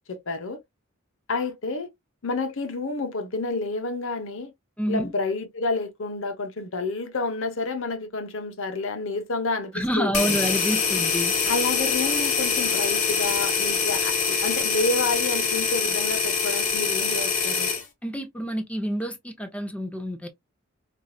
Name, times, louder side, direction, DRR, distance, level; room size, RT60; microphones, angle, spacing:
voice 1, 0.1-0.6 1.3-1.9 2.2-4.5 4.9-10.4 11.5-17.7, left 3 dB, 65° left, 1.0 m, -29 dB
voice 2, 4.8-5.1 9.7-11.3 18.0-20.3, equal, 5° left, 0.7 m, -28 dB
sound 1, 10.1-17.8, left 5 dB, 35° left, 1.1 m, -24 dB
4.6 x 2.6 x 2.3 m
head